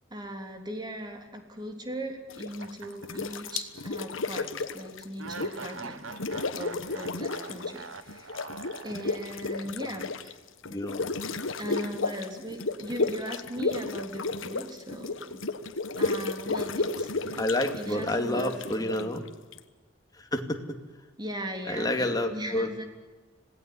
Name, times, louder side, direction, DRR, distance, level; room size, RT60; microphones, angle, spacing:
voice 1, 0.1-6.1 6.5-8.4 8.8-10.4 11.6-15.5 16.0-17.4 17.7-19.1 21.2-22.9, right 1 dB, 20° right, 4 dB, 3.4 m, -39 dB
sound 1, 2.3-2.7 3.0-5.8 6.1-7.8 8.1-19.6, left 3 dB, 80° left, 1.3 m, -33 dB
sound 2, 2.6-3.9 4.2-4.3 5.2-9.5, right 4 dB, 90° right, 1.4 m, -44 dB
voice 2, 10.7-11.1 17.2-19.2 20.1-20.6 21.7-22.7, left 1 dB, 20° left, 5 dB, 2.5 m, -29 dB
26.5 x 18.5 x 9.7 m, 1.3 s
head